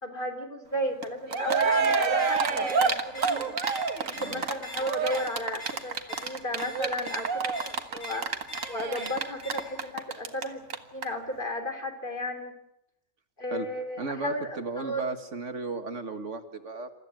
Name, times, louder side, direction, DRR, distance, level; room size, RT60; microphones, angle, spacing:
voice 1, 0.0-3.5 4.0-7.6 7.9-8.2 8.7-10.6 10.9-12.6 13.4-15.0, left 1 dB, 40° left, 5 dB, 3.6 m, -34 dB
Cheering, 1.0-1.1 1.3-10.4 10.7-10.8 11.0-11.1, right 5 dB, 80° right, 1.9 m, -28 dB
sound 1, 1.6-9.9, left 2 dB, 80° left, 7.9 m, -45 dB
voice 2, 14.0-16.9, right 3 dB, 65° right, 8 dB, 2.0 m, -35 dB
28.0 x 14.5 x 9.1 m, 0.81 s
omnidirectional pair, 1.4 m